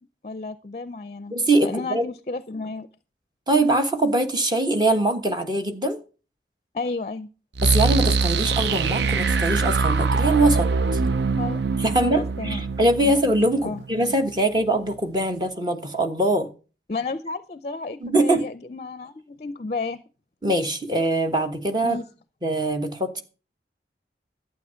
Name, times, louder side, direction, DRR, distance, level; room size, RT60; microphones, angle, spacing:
voice 1, 0.2-1.4 1.6-2.9 6.7-7.3 11.4-11.6 12.0-12.6 13.0-13.1 13.6-13.8 16.9-20.0 21.8-22.1, left 3 dB, 40° left, 14 dB, 0.5 m, -32 dB
voice 2, 1.3-2.1 3.5-6.0 7.6-11.0 11.8-16.5 18.0-18.5 20.4-22.0 22.4-23.2, right 1 dB, 25° right, 6 dB, 1.3 m, -22 dB
sound 1, 7.6-14.4, right 4 dB, 80° right, 0.6 m, -23 dB
12.0 x 8.6 x 5.7 m, 0.36 s
head